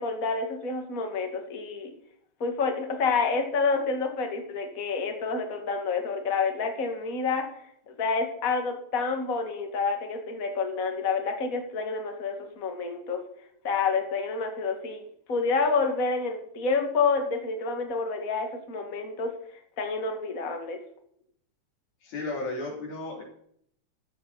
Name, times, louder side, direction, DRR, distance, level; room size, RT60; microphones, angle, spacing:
voice 1, 0.0-1.9 2.4-7.4 7.9-13.2 13.6-15.0 15.3-19.3 19.8-20.8, left 4 dB, 30° left, 4 dB, 2.2 m, -28 dB
voice 2, 22.0-23.2, left 2 dB, 80° left, 0 dB, 4.9 m, -34 dB
15.0 x 12.5 x 4.2 m, 0.66 s
omnidirectional pair, 3.5 m